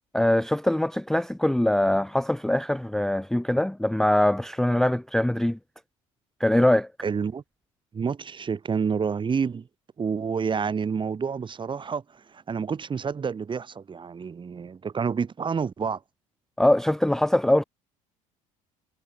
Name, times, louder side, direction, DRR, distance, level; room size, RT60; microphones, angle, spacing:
voice 1, 0.1-5.6 6.4-6.9 16.6-17.6, left 1 dB, 5° left, 0.5 m, -22 dB
voice 2, 7.0-7.4 7.9-9.7 10.0-16.0, right 6 dB, 30° right, 1.2 m, -29 dB
figure-of-eight pair, 60°, 17 cm